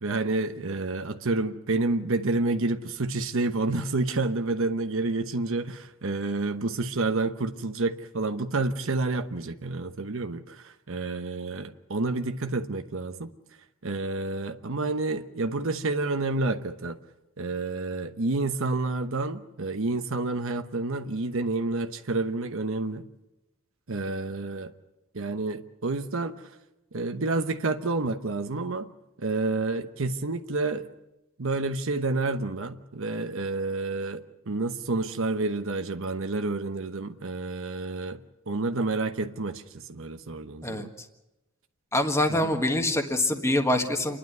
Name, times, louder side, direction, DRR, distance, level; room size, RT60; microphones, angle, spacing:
voice 1, 0.0-13.3 13.8-17.0 17.4-23.1 23.9-24.7 25.1-26.4 26.9-28.9 29.2-30.9 31.4-38.2 38.5-40.9 42.3-42.5, right 3 dB, 65° right, 1.0 m, -29 dB
voice 2, 41.9-44.2, left 1 dB, 15° left, 1.6 m, -25 dB
28.5 x 11.5 x 9.5 m
head